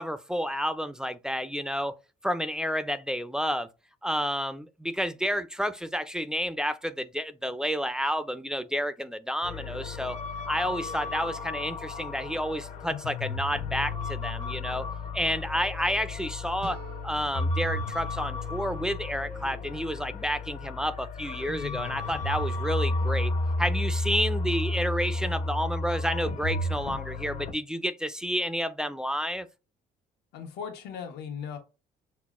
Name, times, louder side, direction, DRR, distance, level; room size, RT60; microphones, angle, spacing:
voice 1, 0.0-1.9 2.2-3.7 4.0-10.2 10.5-14.9 15.1-23.3 23.6-29.5, equal, 5° right, 0.3 m, -30 dB
sound 1, 9.4-27.5, left 2 dB, 45° left, 0.8 m, -32 dB
sound 2, 16.6-19.5, right 7 dB, 80° right, 0.7 m, -49 dB
voice 2, 30.3-31.6, left 7 dB, 75° left, 1.2 m, -37 dB
5.7 x 2.1 x 2.4 m
cardioid pair, 110°, 17 cm